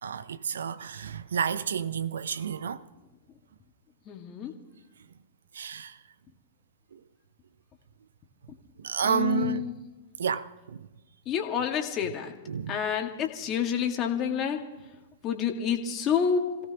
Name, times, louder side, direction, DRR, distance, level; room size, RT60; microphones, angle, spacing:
voice 1, 0.0-2.8 5.5-6.0 6.9-7.0 8.8-9.7 10.2-10.9 12.5-12.8, right 7 dB, 75° right, 0.7 m, -30 dB
voice 2, 4.1-4.5 8.5-8.6 9.0-9.7 11.3-12.4 12.7-14.6 15.2-16.4, left 8 dB, 30° left, 2.0 m, -28 dB
27.0 x 17.0 x 3.0 m
figure-of-eight pair, 105°, 0 cm